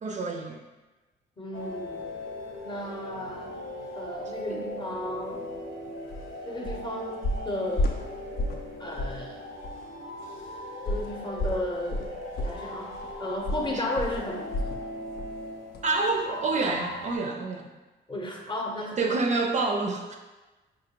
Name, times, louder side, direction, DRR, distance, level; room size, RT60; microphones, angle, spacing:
voice 1, 0.0-0.6 4.5-4.6 13.7-13.9 15.8-17.7 19.0-20.2, right 3 dB, 35° right, 3 dB, 0.4 m, -28 dB
voice 2, 1.4-2.1 2.6-3.6 3.9-5.4 6.5-8.0 8.8-9.4 10.8-12.9 13.2-14.5 18.1-19.2, left 1 dB, 25° left, 0 dB, 0.7 m, -34 dB
sound 1, 1.5-17.2, left 1 dB, 75° left, 0.9 m, -39 dB
sound 2, 6.1-6.3 6.6-6.9 7.2-8.7 9.0-9.2 9.6-9.7 10.9-14.9 15.2-15.4 15.7-15.8, left 1 dB, 50° left, 0.4 m, -31 dB
4.8 x 2.5 x 2.8 m, 1.2 s
cardioid pair, 90°, 20 cm